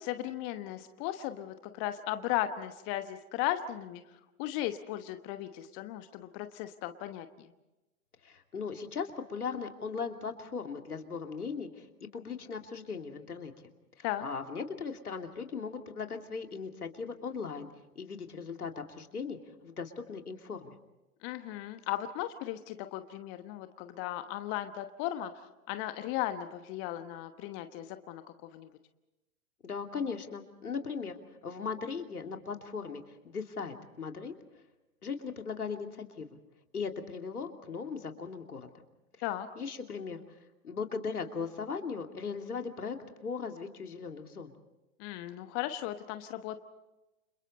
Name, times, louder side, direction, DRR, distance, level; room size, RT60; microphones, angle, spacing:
voice 1, 0.0-4.0 4.4-7.5 14.0-14.3 21.2-28.7 39.2-39.5 45.0-46.6, left 13 dB, 25° left, 9 dB, 1.2 m, -36 dB
voice 2, 8.2-13.5 14.0-17.7 17.9-19.4 19.6-20.7 29.6-31.2 31.4-34.3 35.0-36.4 36.7-38.7 39.6-40.2 40.6-44.5, left 5 dB, 75° left, 4 dB, 2.9 m, -38 dB
29.5 x 27.5 x 4.3 m, 1.0 s
figure-of-eight pair, 115°, 45 cm